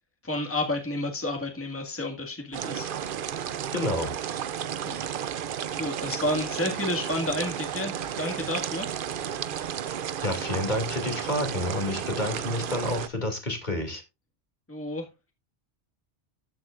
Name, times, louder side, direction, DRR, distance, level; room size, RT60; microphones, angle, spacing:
voice 1, 0.2-2.9 4.8-5.1 5.7-8.9 14.7-15.1, left 1 dB, 10° left, 2 dB, 1.8 m, -31 dB
sound 1, 2.5-13.1, right 9 dB, 55° right, 0.7 m, -33 dB
voice 2, 3.7-4.1 10.2-14.0, left 1 dB, 40° left, 3 dB, 2.7 m, -29 dB
13.5 x 7.9 x 2.5 m, 0.26 s
omnidirectional pair, 1.2 m